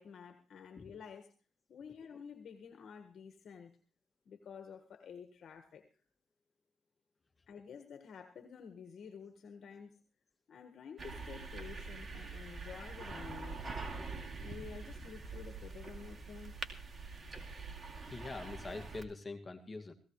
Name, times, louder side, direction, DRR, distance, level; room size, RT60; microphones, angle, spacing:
voice 1, 0.0-1.3 1.7-3.7 4.3-5.8 7.5-10.0 10.5-13.9 14.4-16.5, left 6 dB, 60° left, 6 dB, 1.7 m, -51 dB
sound 1, 11.0-19.0, right 3 dB, 35° right, 2.6 m, -45 dB
voice 2, 18.0-19.9, left 3 dB, 30° left, 6 dB, 2.2 m, -44 dB
17.0 x 16.5 x 3.2 m, 0.39 s
supercardioid pair, 60°, 0 cm